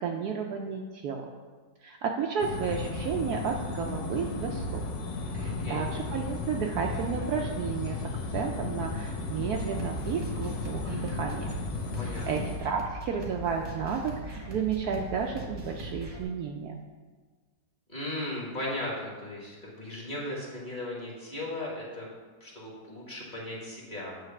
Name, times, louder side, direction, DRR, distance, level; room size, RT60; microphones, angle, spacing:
voice 1, 0.0-1.3 1.8-4.8 5.3-8.0 8.3-11.6 12.0-16.8, right 6 dB, 70° right, 2 dB, 1.0 m, -32 dB
sound 1, 2.4-12.6, left 3 dB, 80° left, 1.5 m, -34 dB
voice 2, 5.3-5.9 11.7-12.5 17.9-22.1 22.4-24.2, left 1 dB, 30° left, -5 dB, 1.6 m, -37 dB
sound 2, 9.4-16.2, right 1 dB, 25° right, 0.9 m, -40 dB
8.8 x 3.2 x 5.9 m, 1.4 s
omnidirectional pair, 1.9 m